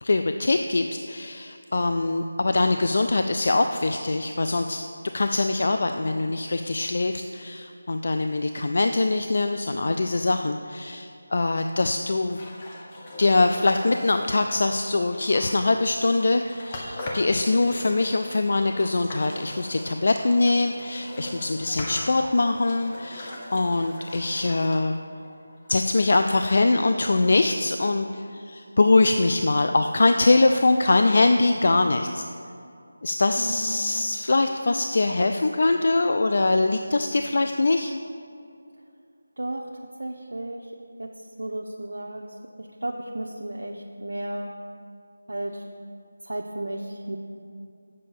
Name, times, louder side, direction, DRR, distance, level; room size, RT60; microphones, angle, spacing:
voice 1, 0.0-4.8 5.1-12.4 13.2-24.9 25.7-32.2 33.0-37.9, left 2 dB, 55° left, 6 dB, 0.3 m, -23 dB
sound 1, 12.3-25.9, left 1 dB, 25° left, 0.8 m, -40 dB
voice 2, 33.4-33.8 39.4-39.7 40.0-40.7 41.0-41.1 41.4-42.2 42.6-44.5 45.3-45.6 46.2-47.2, right 1 dB, 85° right, 0 dB, 0.6 m, -33 dB
7.5 x 5.4 x 7.0 m, 2.5 s
figure-of-eight pair, 170°, 0 cm